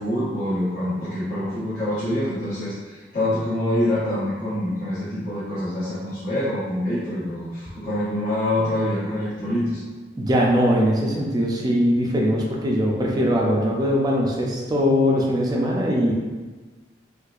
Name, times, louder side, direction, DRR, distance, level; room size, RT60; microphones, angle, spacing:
voice 1, 0.0-9.8, left 1 dB, 50° left, -14 dB, 1.1 m, -25 dB
voice 2, 10.2-16.1, equal, 20° right, -2 dB, 0.5 m, -21 dB
4.2 x 2.5 x 2.5 m, 1.3 s
head